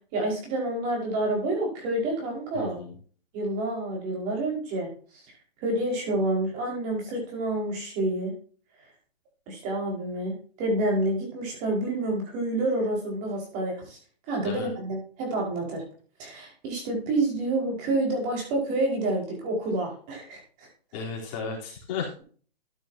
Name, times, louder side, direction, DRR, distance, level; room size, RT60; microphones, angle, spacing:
voice 1, 0.1-2.8 3.3-5.3 5.6-8.3 9.5-14.0 14.3-15.8 16.2-20.7, right 2 dB, 25° right, 0 dB, 5.2 m, -28 dB
voice 2, 2.5-2.9 14.4-14.7 20.9-22.2, left 5 dB, 30° left, -3 dB, 3.8 m, -34 dB
14.0 x 9.1 x 2.8 m, 0.42 s
hypercardioid pair, 155°, 31 cm